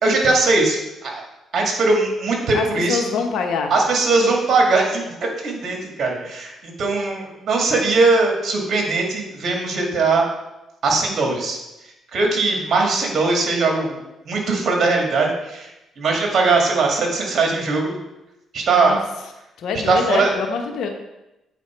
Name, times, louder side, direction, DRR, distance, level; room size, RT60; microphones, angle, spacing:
voice 1, 0.0-1.2 1.5-3.1 3.7-5.2 5.4-10.2 10.8-11.6 12.1-14.0 14.3-15.7 16.0-18.0 18.5-19.0 19.9-20.3, right 3 dB, 55° right, 1 dB, 2.1 m, -20 dB
voice 2, 2.5-3.7 18.7-19.0 19.6-20.9, left 5 dB, 75° left, 4 dB, 1.1 m, -24 dB
8.3 x 4.6 x 4.6 m, 0.95 s
cardioid pair, 90°, 0 cm